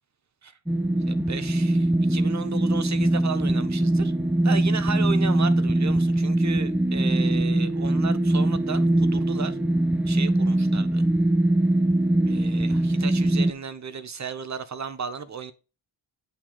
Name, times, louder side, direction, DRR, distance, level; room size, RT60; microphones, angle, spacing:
sound 1, 0.7-13.5, right 1 dB, 5° right, 0.5 m, -22 dB
voice 1, 1.1-4.1 4.4-9.6 10.1-11.1 12.3-15.5, right 6 dB, 35° right, 1.0 m, -34 dB
8.3 x 3.0 x 5.7 m
supercardioid pair, 50°, 45 cm